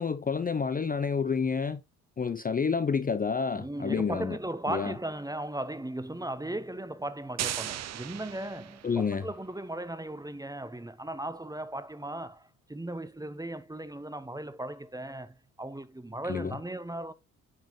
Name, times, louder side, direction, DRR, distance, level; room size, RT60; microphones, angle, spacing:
voice 1, 0.0-1.8 2.2-4.4 4.7-4.9 8.8-9.3 16.3-16.6, left 5 dB, 20° left, 0.6 m, -29 dB
voice 2, 3.5-17.1, right 1 dB, 10° right, 0.9 m, -37 dB
sound 1, 7.4-9.2, right 12 dB, 40° right, 0.6 m, -37 dB
8.7 x 5.7 x 3.1 m
hypercardioid pair, 50°, 41 cm